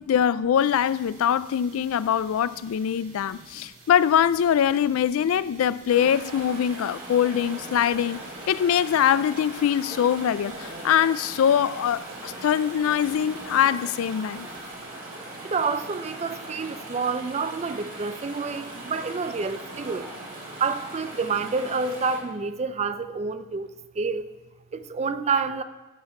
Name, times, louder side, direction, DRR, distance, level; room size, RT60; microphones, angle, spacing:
voice 1, 0.0-14.5, left 9 dB, 85° left, 0.3 m, -23 dB
sound 1, 0.6-19.8, right 3 dB, 90° right, 3.7 m, -53 dB
Chatter / Stream, 5.9-22.2, right 1 dB, 70° right, 2.6 m, -40 dB
voice 2, 15.4-20.1 20.6-23.7 24.0-24.2 24.7-25.6, right 4 dB, 30° right, 0.4 m, -28 dB
15.0 x 5.8 x 4.3 m
head